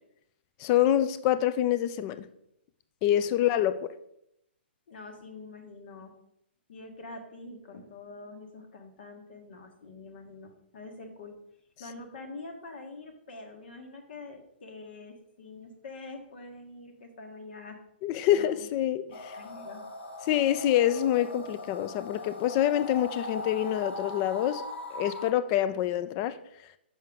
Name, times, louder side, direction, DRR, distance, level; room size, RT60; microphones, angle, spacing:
voice 1, 0.6-2.2 3.0-3.9 18.0-19.3 20.3-24.6 24.9-26.4, left 11 dB, 30° left, 0.4 m, -26 dB
voice 2, 4.9-6.2 6.7-11.4 11.8-17.8 18.3-18.7 19.1-19.9, left 3 dB, 60° left, 1.5 m, -45 dB
sound 1, 19.1-25.3, left 2 dB, 85° left, 1.0 m, -40 dB
7.2 x 5.6 x 3.6 m
hypercardioid pair, 140°, 6 cm